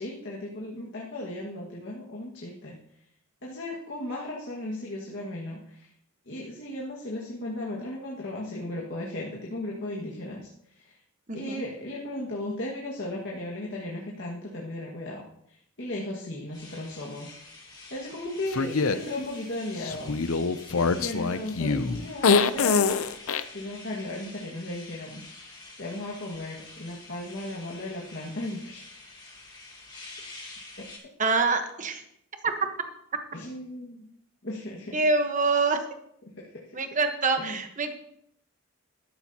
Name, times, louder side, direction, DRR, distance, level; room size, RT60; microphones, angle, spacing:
voice 1, 0.0-2.7 3.4-5.9 6.3-11.0 11.3-17.3 17.9-20.2 20.7-23.0 23.5-25.2 25.8-28.8 30.8-30.9 33.3-34.1 34.4-35.0 36.4-36.8 37.4-37.6, left 1 dB, 55° left, -4 dB, 1.8 m, -36 dB
voice 2, 11.3-11.6 31.2-32.0 34.9-35.8 36.7-37.9, right 3 dB, 35° right, 6 dB, 1.2 m, -25 dB
sound 1, 16.5-31.0, left 2 dB, 20° left, 3.2 m, -47 dB
sound 2, 18.5-19.0 19.8-23.4, left 5 dB, 70° left, 0.6 m, -24 dB
14.0 x 12.5 x 2.9 m, 0.74 s
head